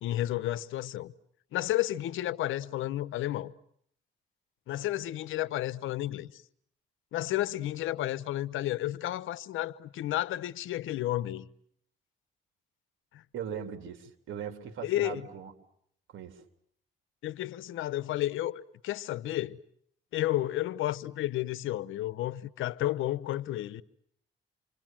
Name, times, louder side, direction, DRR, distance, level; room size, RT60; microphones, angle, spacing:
voice 1, 0.0-1.1 1.5-3.5 4.7-6.4 7.1-11.5 13.1-13.2 14.8-15.3 17.2-19.6 20.1-23.8, left 14 dB, 85° left, 1.0 m, -32 dB
voice 2, 13.3-15.5 16.1-16.4, right 8 dB, 80° right, 3.3 m, -39 dB
28.0 x 25.5 x 7.5 m
cardioid pair, 90°, 20 cm